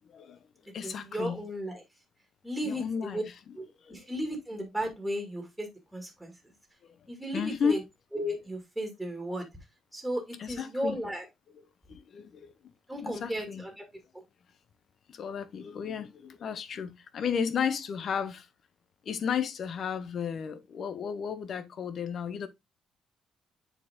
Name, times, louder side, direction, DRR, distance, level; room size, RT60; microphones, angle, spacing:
voice 1, 0.1-0.5 0.7-1.4 2.6-3.2 3.8-4.1 6.8-7.1 7.3-7.8 10.4-11.0 11.9-12.7 13.0-13.6 15.1-18.5 19.0-22.5, left 7 dB, 50° left, 0.9 m, -33 dB
voice 2, 0.8-1.8 2.4-3.2 3.5-6.5 7.1-7.8 8.1-9.5 9.9-11.2 12.9-13.7 14.1-14.2, equal, 5° right, 2.2 m, -35 dB
7.1 x 4.6 x 3.6 m
cardioid pair, 145°, 0 cm